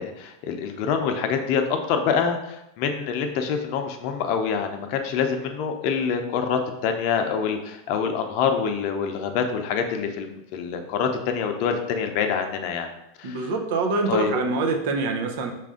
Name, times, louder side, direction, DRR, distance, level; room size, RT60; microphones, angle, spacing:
voice 1, 0.0-12.9 13.2-13.5 14.1-14.3, left 6 dB, 55° left, 5 dB, 0.6 m, -26 dB
voice 2, 13.2-15.5, right 3 dB, 70° right, 4 dB, 0.7 m, -25 dB
5.4 x 2.5 x 3.6 m, 0.87 s
hypercardioid pair, 110°, 0 cm